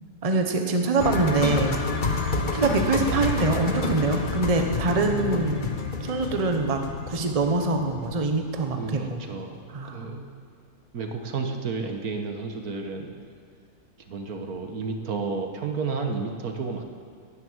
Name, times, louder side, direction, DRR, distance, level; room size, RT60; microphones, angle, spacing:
voice 1, 0.2-1.8 2.5-5.6 6.0-9.2 9.7-10.2, right 3 dB, 25° right, 4 dB, 1.1 m, -24 dB
sound 1, 1.0-9.0 9.2-9.3, left 4 dB, 35° left, 1.1 m, -29 dB
voice 2, 8.7-10.2 10.9-13.1 14.0-16.8, right 4 dB, 75° right, 4 dB, 1.7 m, -32 dB
12.5 x 10.5 x 8.8 m, 2.2 s
omnidirectional pair, 1.6 m